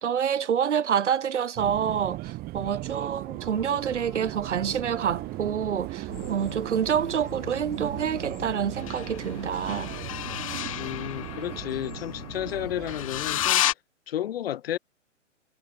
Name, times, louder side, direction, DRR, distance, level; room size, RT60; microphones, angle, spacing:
voice 1, 0.0-9.9, right 8 dB, 70° right, 2.1 m, -27 dB
Subway metro underground, 1.6-13.5, right 18 dB, 25° right, 3.9 m, -37 dB
sound 1, 3.4-6.5 8.8-13.7, left 14 dB, 30° left, 0.5 m, -33 dB
sound 2, 6.1-13.3, left 7 dB, 70° left, 3.3 m, -43 dB
voice 2, 10.8-13.7 14.1-14.8, left 11 dB, 50° left, 1.1 m, -32 dB
hypercardioid pair, 135°, 37 cm